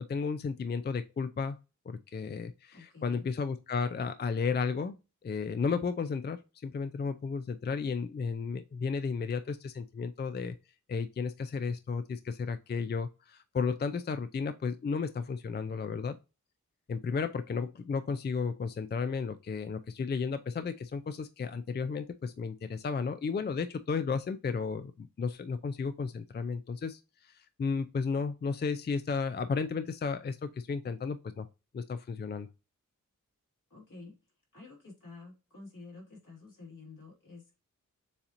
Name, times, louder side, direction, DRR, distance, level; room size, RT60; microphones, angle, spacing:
voice 1, 0.1-1.6 1.9-5.0 5.2-10.6 10.9-16.2 16.9-31.5 31.7-32.5, left 5 dB, 35° left, 0.4 m, -33 dB
voice 2, 2.7-3.3 33.7-34.1 34.5-37.5, left 3 dB, 70° left, 2.5 m, -50 dB
7.0 x 2.8 x 2.5 m
wide cardioid pair, 60°, 32 cm